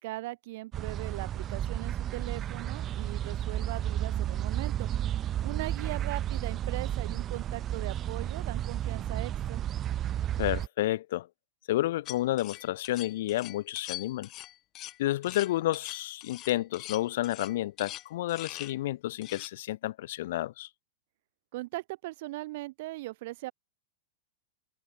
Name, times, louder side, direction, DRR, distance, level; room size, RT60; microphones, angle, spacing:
voice 1, 0.0-4.9 5.4-9.6 21.5-23.5, right 19 dB, 50° right, 3.6 m, -39 dB
sound 1, 0.7-10.7, right 11 dB, 20° right, 1.2 m, -32 dB
voice 2, 10.4-11.3 11.7-14.3 15.0-20.7, left 15 dB, 60° left, 4.2 m, -30 dB
sound 2, 12.1-18.8 19.2-19.5, left 16 dB, 30° left, 4.0 m, -43 dB
supercardioid pair, 160°, 0 cm